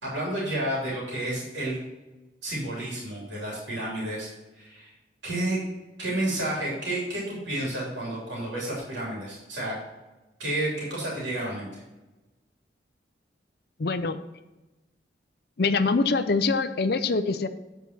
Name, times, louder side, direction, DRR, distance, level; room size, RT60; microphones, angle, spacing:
voice 1, 0.0-1.8 2.4-4.3 4.5-4.9 5.2-5.6 6.0-9.7 10.4-11.8, right 1 dB, 80° right, -5 dB, 3.1 m, -30 dB
voice 2, 13.8-14.2 15.6-17.5, left 3 dB, 55° left, 11 dB, 0.5 m, -24 dB
9.0 x 4.6 x 5.9 m, 1.1 s
head